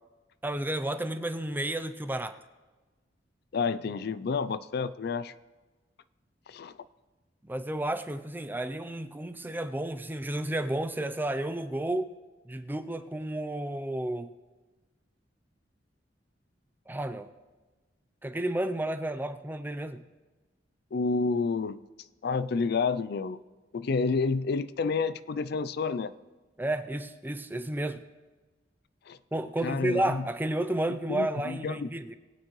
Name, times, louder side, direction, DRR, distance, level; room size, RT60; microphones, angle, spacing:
voice 1, 0.4-2.3 7.4-12.1 12.4-14.3 16.9-17.3 18.2-20.0 26.6-28.0 29.3-32.2, right 1 dB, 10° right, 9 dB, 0.5 m, -31 dB
voice 2, 3.5-5.3 6.5-6.7 20.9-21.8 22.2-23.4 23.7-26.1 29.1-29.2 29.6-30.2 31.1-31.9, left 4 dB, 60° left, 14 dB, 0.4 m, -29 dB
21.0 x 9.1 x 3.2 m, 1.3 s
head